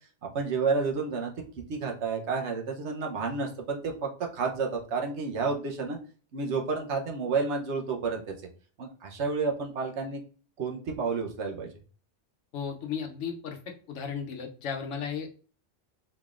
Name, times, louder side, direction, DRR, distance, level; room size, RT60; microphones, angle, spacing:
voice 1, 0.3-1.3 1.7-6.0 6.3-8.3 8.8-10.2 10.6-11.7, right 4 dB, 70° right, 2 dB, 1.1 m, -30 dB
voice 2, 12.5-13.6 13.9-15.3, left 7 dB, 85° left, 4 dB, 1.1 m, -34 dB
3.9 x 3.3 x 2.4 m, 0.40 s
omnidirectional pair, 1.2 m